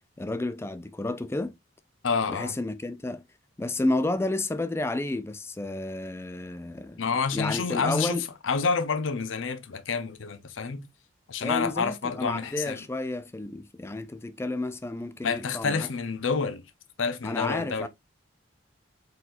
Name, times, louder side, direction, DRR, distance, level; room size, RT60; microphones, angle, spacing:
voice 1, 0.2-1.6 2.3-3.2 3.6-7.0 7.3-8.3 11.4-15.9 17.2-17.9, left 2 dB, 15° left, 0.4 m, -31 dB
voice 2, 2.0-2.6 7.0-10.9 11.3-12.9 15.2-16.6 17.0-17.9, left 5 dB, 90° left, 0.7 m, -28 dB
4.2 x 4.0 x 2.4 m
head